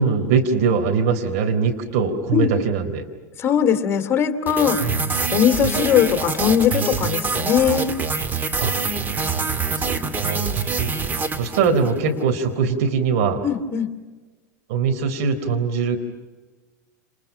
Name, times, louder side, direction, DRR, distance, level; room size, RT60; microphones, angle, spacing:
voice 1, 0.0-3.0 4.8-5.1 8.6-8.7 9.2-13.4 14.7-16.0, right 5 dB, 55° right, 5 dB, 4.0 m, -22 dB
voice 2, 3.4-4.9 5.3-7.9 13.4-13.9, left 8 dB, 25° left, 8 dB, 2.8 m, -20 dB
sound 1, 4.5-12.0, right 4 dB, 20° right, 1.9 m, -25 dB
30.0 x 29.0 x 5.8 m, 1.3 s
figure-of-eight pair, 85°, 10 cm